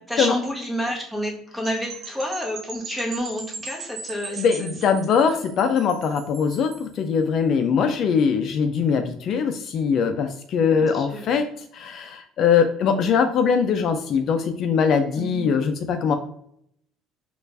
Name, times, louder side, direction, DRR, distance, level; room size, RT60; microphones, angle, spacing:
voice 1, 0.1-4.7 5.1-5.4 10.7-11.3 15.2-15.5, equal, 5° right, -1 dB, 1.1 m, -30 dB
sound 1, 1.6-6.9, right 5 dB, 75° right, 0.7 m, -39 dB
voice 2, 4.3-11.5 11.7-16.2, left 6 dB, 55° left, 7 dB, 0.3 m, -22 dB
4.4 x 2.4 x 2.5 m, 0.68 s
cardioid pair, 110°, 0 cm